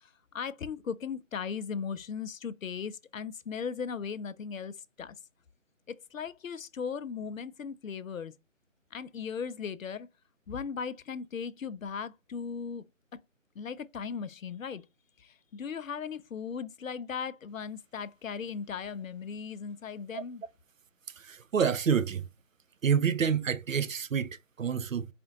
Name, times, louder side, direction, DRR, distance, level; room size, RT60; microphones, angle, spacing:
voice 1, 0.0-5.2 5.9-8.3 8.9-10.1 10.5-12.8 13.6-14.9 15.2-20.4, left 6 dB, 75° left, 0.5 m, -37 dB
voice 2, 21.2-22.2 22.8-25.1, right 7 dB, 75° right, 0.5 m, -28 dB
4.2 x 2.5 x 2.6 m
figure-of-eight pair, 160°, 40 cm